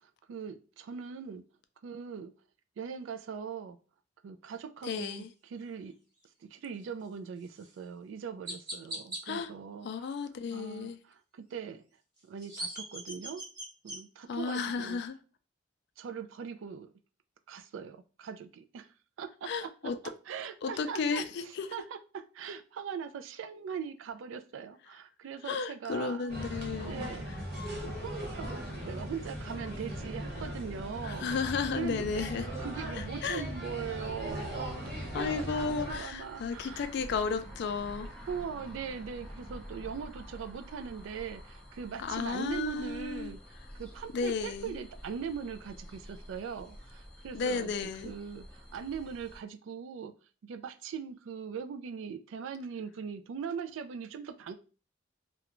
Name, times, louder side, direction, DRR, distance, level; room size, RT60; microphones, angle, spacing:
voice 1, 0.3-1.4 1.8-2.3 2.8-3.8 4.2-6.0 6.5-10.1 10.5-11.9 12.3-13.4 13.8-15.0 16.0-16.9 17.5-18.9 19.2-21.2 21.7-27.5 27.8-31.3 31.8-36.9 38.3-50.1 50.4-54.5, right 6 dB, 80° right, 0.3 m, -41 dB
voice 2, 4.8-5.3 9.3-9.5 9.8-11.0 14.3-15.2 19.5-20.0 20.6-21.7 25.5-27.1 31.0-32.5 33.2-33.4 35.1-38.1 42.0-43.3 44.1-44.8 47.3-48.1, left 5 dB, 60° left, 0.3 m, -33 dB
Chirp tweet, 7.6-7.7 8.5-9.2 12.2-14.0, right 1 dB, 20° right, 1.1 m, -39 dB
sound 1, 26.3-36.0, equal, 55° right, 0.9 m, -38 dB
sound 2, 34.2-49.4, equal, 5° left, 0.5 m, -49 dB
2.4 x 2.1 x 2.9 m
head